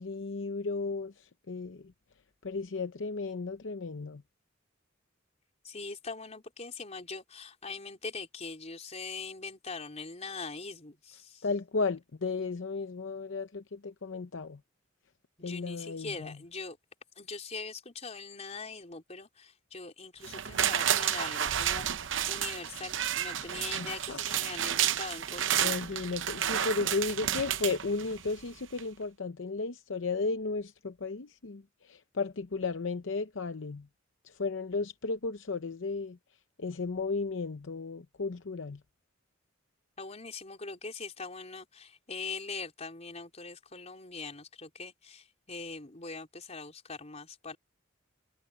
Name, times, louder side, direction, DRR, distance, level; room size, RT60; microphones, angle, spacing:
voice 1, 0.0-1.8 2.4-4.2 11.4-14.6 15.4-16.3 23.7-24.2 25.6-33.9 34.2-36.2 36.6-38.8, left 4 dB, 70° left, 0.7 m, -34 dB
voice 2, 5.6-11.5 15.4-16.8 17.2-21.9 22.3-26.1 40.0-47.6, left 4 dB, 35° left, 4.0 m, -42 dB
sound 1, 20.2-28.4 28.8-28.9, right 10 dB, 70° right, 0.8 m, -31 dB
head